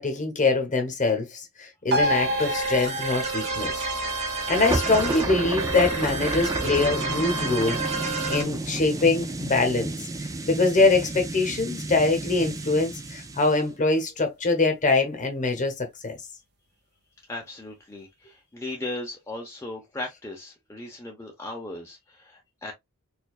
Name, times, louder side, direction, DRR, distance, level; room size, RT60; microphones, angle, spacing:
voice 1, 0.0-3.8 4.5-9.9 10.2-16.2, left 3 dB, 35° left, 1.0 m, -24 dB
sound 1, 1.9-8.9 9.2-9.3, equal, 50° right, 1.1 m, -32 dB
sound 2, 2.0-8.4, right 3 dB, 30° right, 2.1 m, -30 dB
sound 3, 4.5-13.6, right 2 dB, 15° right, 0.5 m, -32 dB
voice 2, 17.3-22.7, left 2 dB, 10° left, 0.8 m, -37 dB
4.5 x 2.6 x 2.4 m
head